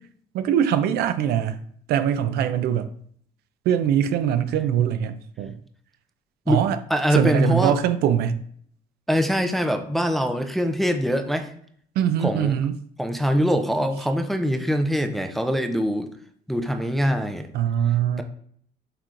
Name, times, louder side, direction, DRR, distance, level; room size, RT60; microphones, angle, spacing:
voice 1, 0.3-1.6 1.9-2.9 3.7-5.5 6.5-6.8 7.1-8.4 12.0-12.8 17.5-18.2, right 9 dB, 75° right, 12 dB, 0.4 m, -22 dB
voice 2, 6.9-7.8 9.1-11.5 12.2-12.5 13.0-16.1 16.5-17.5, equal, ahead, 6 dB, 0.4 m, -23 dB
5.7 x 3.2 x 2.5 m, 0.62 s
cardioid pair, 110°, 17 cm